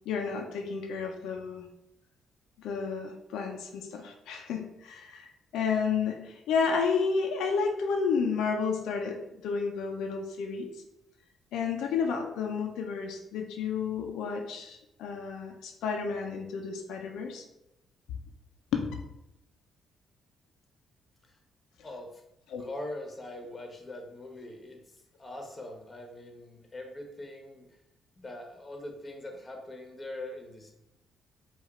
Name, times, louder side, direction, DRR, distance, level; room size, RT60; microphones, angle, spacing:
voice 1, 0.1-1.6 2.6-5.3 5.5-10.7 11.5-17.4 18.7-18.9 22.5-22.6, left 5 dB, 85° left, 3 dB, 0.5 m, -31 dB
voice 2, 21.8-22.2 22.6-27.8 28.2-30.7, left 1 dB, 25° left, 3 dB, 1.0 m, -42 dB
4.9 x 2.4 x 4.3 m, 0.84 s
cardioid pair, 90°, 0 cm